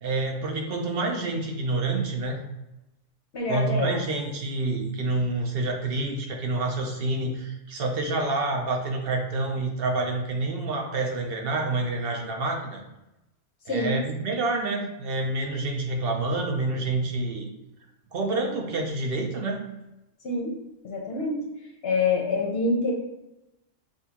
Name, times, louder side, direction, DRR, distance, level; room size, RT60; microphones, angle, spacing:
voice 1, 0.0-2.4 3.5-12.8 13.7-17.5 18.1-19.6, right 2 dB, 55° right, 1 dB, 0.8 m, -28 dB
voice 2, 3.3-4.0 13.7-14.0 20.2-20.5 20.8-21.4 21.8-22.9, left 3 dB, 55° left, -1 dB, 0.9 m, -26 dB
6.0 x 2.3 x 2.9 m, 0.93 s
omnidirectional pair, 1.3 m